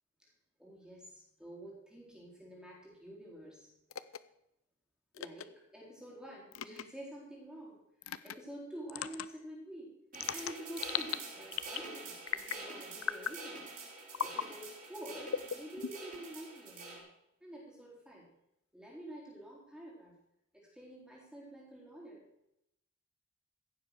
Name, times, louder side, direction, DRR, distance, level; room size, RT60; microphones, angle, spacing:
voice 1, 0.6-3.7 5.2-10.0 10.3-13.6 14.2-17.1 17.4-18.3 18.7-20.1 20.5-22.2, right 1 dB, 5° right, -4 dB, 4.2 m, -49 dB
sound 1, 3.9-4.2 5.1-5.4 6.5-6.8 8.0-8.3 8.9-9.3 10.1-11.2 11.5-11.9 12.3-12.6 13.0-13.4 14.1-14.5 15.3-16.2, left 8 dB, 90° left, 0.6 m, -37 dB
sound 2, 10.1-17.0, right 3 dB, 45° right, 4.8 m, -46 dB
16.0 x 7.5 x 6.7 m, 0.81 s
head